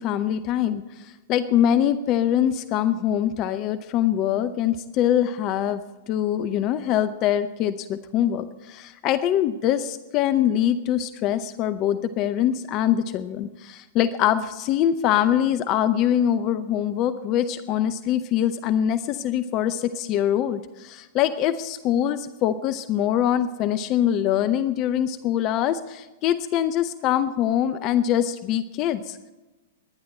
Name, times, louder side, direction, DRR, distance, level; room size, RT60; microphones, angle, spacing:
voice 1, 0.0-5.8 6.1-29.2, left 10 dB, 35° left, 13 dB, 0.7 m, -23 dB
21.5 x 10.5 x 4.3 m, 1.1 s
figure-of-eight pair, 105°, 0 cm